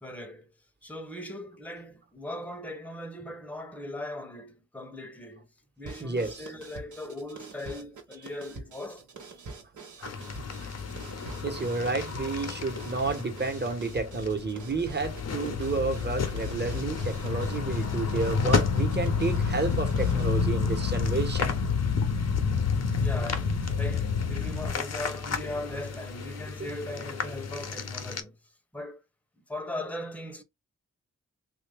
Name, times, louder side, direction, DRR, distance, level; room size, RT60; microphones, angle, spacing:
voice 1, 0.0-0.5 0.8-5.5 5.8-9.0 13.8-13.9 23.0-28.4 28.7-29.0 29.5-30.4, left 1 dB, 5° left, 0.9 m, -39 dB
sound 1, 5.8-20.3, right 3 dB, 70° right, 1.1 m, -45 dB
voice 2, 6.0-6.5 10.0-10.1 10.6-10.7 11.4-21.5, right 3 dB, 35° right, 1.3 m, -31 dB
sound 2, 10.0-28.2, left 5 dB, 55° left, 0.8 m, -35 dB
sound 3, 13.9-24.7, left 5 dB, 90° left, 0.7 m, -29 dB
2.9 x 2.6 x 3.4 m
cardioid pair, 45°, 32 cm